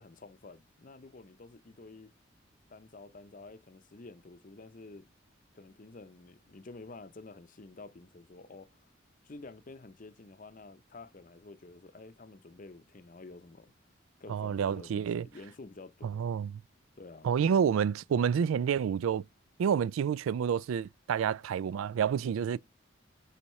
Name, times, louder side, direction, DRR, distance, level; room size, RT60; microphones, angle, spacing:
voice 1, 0.0-2.1 2.7-5.1 5.5-8.9 9.2-13.7 14.2-16.3 17.0-17.3, left 3 dB, 40° left, 0.6 m, -50 dB
voice 2, 14.3-15.3 16.0-16.5 17.2-19.2 19.6-22.6, right 7 dB, 85° right, 0.3 m, -29 dB
9.9 x 4.1 x 3.1 m
head